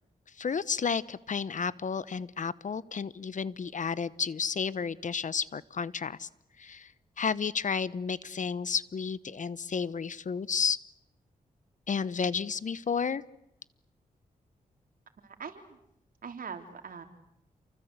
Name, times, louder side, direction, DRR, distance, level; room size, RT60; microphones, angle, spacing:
voice 1, 0.4-6.3 6.6-6.9 7.2-10.8 11.9-13.2, left 6 dB, 55° left, 18 dB, 1.0 m, -32 dB
voice 2, 15.2-15.8 16.2-17.0, right 6 dB, 70° right, 6 dB, 3.8 m, -42 dB
29.0 x 24.5 x 8.2 m, 0.77 s
cardioid pair, 70°, 15 cm